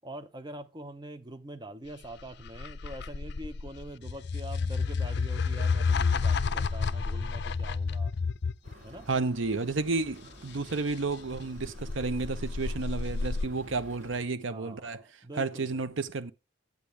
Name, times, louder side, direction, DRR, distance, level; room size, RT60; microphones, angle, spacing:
voice 1, 0.0-8.1 8.8-9.1 14.5-15.8, right 1 dB, 20° right, 0.7 m, -44 dB
sound 1, 2.0-8.7 11.4-13.4, left 4 dB, 55° left, 0.5 m, -30 dB
sound 2, 8.6-14.2, equal, 40° right, 7.1 m, -50 dB
voice 2, 9.1-15.0 15.4-16.3, right 3 dB, 75° right, 0.8 m, -31 dB
10.0 x 8.3 x 3.3 m
head